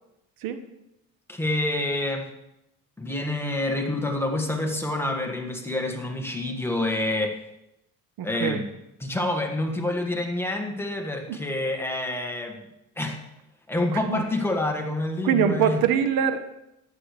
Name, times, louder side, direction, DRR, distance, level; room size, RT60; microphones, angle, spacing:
voice 1, 1.3-2.3 3.0-7.4 8.2-8.7 9.0-12.6 13.0-13.2 13.7-15.8, left 2 dB, 5° left, 2 dB, 1.8 m, -27 dB
voice 2, 8.2-8.6 11.3-11.4 13.9-14.2 15.2-16.4, right 8 dB, 70° right, 9 dB, 1.1 m, -24 dB
15.5 x 11.0 x 3.3 m, 0.87 s
cardioid pair, 110°, 36 cm